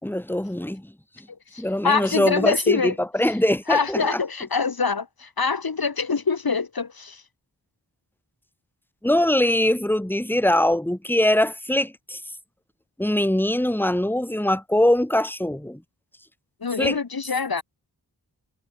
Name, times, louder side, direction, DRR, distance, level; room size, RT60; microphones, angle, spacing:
voice 1, 0.0-0.9 1.6-4.2 9.0-12.2 13.0-15.8 16.8-17.0, left 1 dB, 5° left, 2.4 m, -22 dB
voice 2, 1.5-2.9 3.7-7.2 16.6-17.6, left 5 dB, 60° left, 2.2 m, -25 dB
wide cardioid pair, 60°, 41 cm